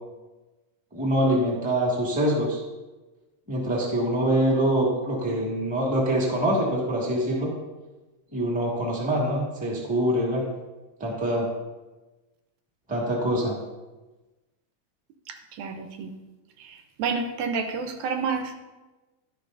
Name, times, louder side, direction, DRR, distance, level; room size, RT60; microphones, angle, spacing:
voice 1, 0.9-2.6 3.5-7.5 8.3-10.4 11.0-11.5 12.9-13.6, right 1 dB, 5° right, -4 dB, 1.1 m, -24 dB
voice 2, 15.3-16.1 16.6-18.5, right 5 dB, 80° right, 5 dB, 2.2 m, -30 dB
11.0 x 10.0 x 2.6 m, 1.2 s
omnidirectional pair, 3.4 m